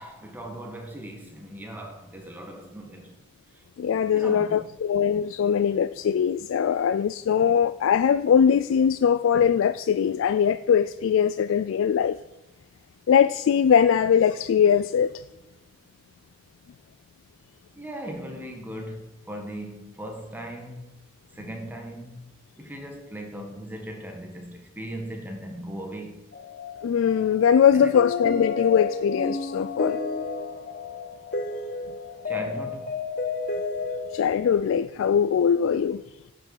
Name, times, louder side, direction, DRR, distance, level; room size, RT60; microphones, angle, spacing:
voice 1, 0.0-3.1 4.1-4.7 7.4-7.5 17.7-20.9 21.3-22.2 22.6-26.2 27.7-27.9 32.2-32.9, right 1 dB, 10° right, 1.5 m, -38 dB
voice 2, 3.8-12.2 13.1-15.2 26.8-30.0 34.1-36.0, left 7 dB, 80° left, 0.3 m, -21 dB
sound 1, 26.3-34.5, left 4 dB, 45° left, 0.8 m, -31 dB
10.0 x 5.9 x 6.5 m
head